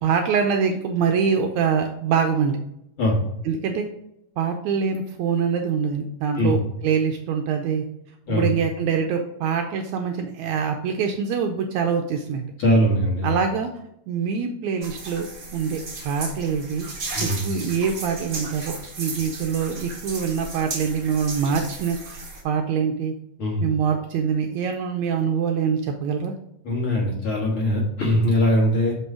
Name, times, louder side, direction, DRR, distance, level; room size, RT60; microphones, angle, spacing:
voice 1, 0.0-2.6 3.4-3.9 4.4-7.9 8.3-12.5 13.2-13.7 14.1-15.3 15.5-16.9 17.2-23.1 23.6-26.3, right 6 dB, 80° right, 4 dB, 1.8 m, -24 dB
voice 2, 12.6-13.3 17.1-17.4 23.4-23.6 26.7-28.9, equal, 50° left, -2 dB, 1.9 m, -21 dB
sound 1, 14.8-22.4, right 2 dB, 40° right, 1.1 m, -35 dB
6.2 x 5.4 x 4.8 m, 0.79 s
omnidirectional pair, 3.8 m